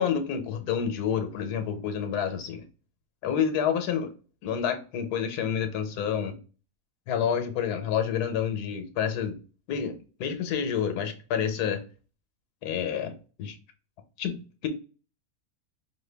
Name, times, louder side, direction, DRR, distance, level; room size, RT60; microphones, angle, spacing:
voice 1, 0.0-2.6 3.2-4.1 4.4-6.4 7.1-9.4 9.7-11.8 12.6-13.6 14.2-14.7, left 8 dB, 85° left, 1.3 m, -29 dB
4.9 x 2.2 x 3.3 m
omnidirectional pair, 1.7 m